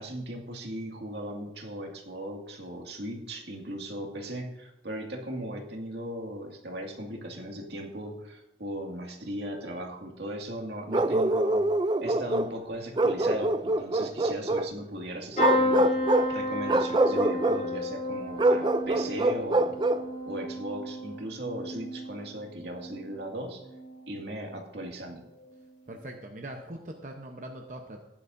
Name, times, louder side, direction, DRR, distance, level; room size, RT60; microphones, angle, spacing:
voice 1, 0.0-11.7 12.0-19.8 20.3-23.6 24.1-25.2, right 1 dB, 75° right, 1 dB, 2.1 m, -37 dB
Bark, 10.9-12.5 13.0-14.7 15.3-16.3 16.7-17.6 18.4-20.1, right 2 dB, 25° right, 0.4 m, -25 dB
sound 1, 15.4-23.2 23.6-24.2 25.4-25.6 25.9-26.0, left 1 dB, 45° left, 3.6 m, -32 dB
voice 2, 25.9-28.0, right 1 dB, 45° right, 2 dB, 0.9 m, -41 dB
16.0 x 10.5 x 2.7 m, 0.90 s
head